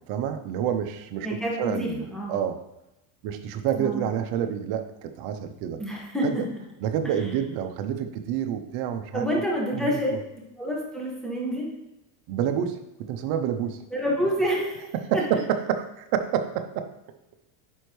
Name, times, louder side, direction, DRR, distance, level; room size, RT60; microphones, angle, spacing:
voice 1, 0.1-2.6 3.2-5.8 6.2-6.4 6.8-9.3 9.7-10.0 12.3-12.7 13.1-13.8 14.9-15.8 16.1-16.9, right 9 dB, 50° right, 8 dB, 0.8 m, -28 dB
voice 2, 1.2-2.3 3.8-4.0 5.8-6.2 7.0-7.1 9.1-10.1 10.6-11.7 13.9-14.9, equal, ahead, -3 dB, 1.7 m, -28 dB
10.0 x 4.4 x 3.3 m, 0.89 s
supercardioid pair, 130°, 46 cm